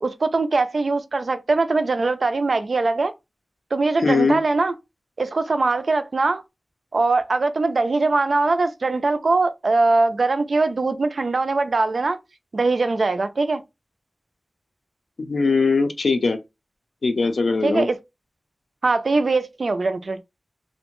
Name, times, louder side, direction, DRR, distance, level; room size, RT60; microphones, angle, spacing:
voice 1, 0.0-3.1 3.7-4.7 5.2-6.4 6.9-12.2 12.5-13.6 17.6-18.0 18.8-20.2, right 3 dB, 65° right, 0.3 m, -21 dB
voice 2, 4.0-4.4 15.2-16.4 17.0-17.9, left 4 dB, 75° left, 0.5 m, -20 dB
2.6 x 2.1 x 2.9 m
wide cardioid pair, 75°, 0 cm